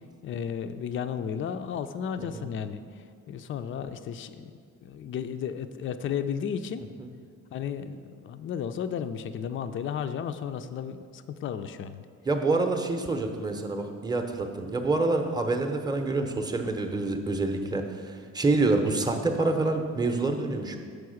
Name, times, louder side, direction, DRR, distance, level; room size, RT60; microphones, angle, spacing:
voice 1, 0.2-4.5 4.8-6.9 7.5-12.1, left 7 dB, 45° left, 10 dB, 0.4 m, -34 dB
voice 2, 2.2-2.5 7.0-7.1 12.2-20.8, right 3 dB, 15° right, 5 dB, 0.7 m, -27 dB
6.4 x 4.7 x 6.3 m, 2.2 s
cardioid pair, 90°, 30 cm